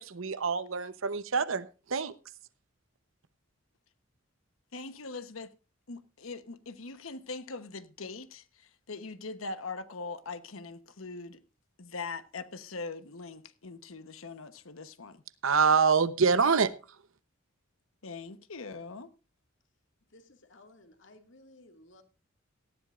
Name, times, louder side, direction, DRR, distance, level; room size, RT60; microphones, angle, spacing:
voice 1, 0.0-2.1 15.4-16.7, right 5 dB, 75° right, 0.9 m, -26 dB
voice 2, 4.7-5.5 5.9-11.4 11.8-15.2 18.0-19.1, left 3 dB, 80° left, 1.1 m, -41 dB
voice 3, 20.1-22.0, left 1 dB, 60° left, 2.2 m, -57 dB
18.0 x 13.5 x 2.5 m
head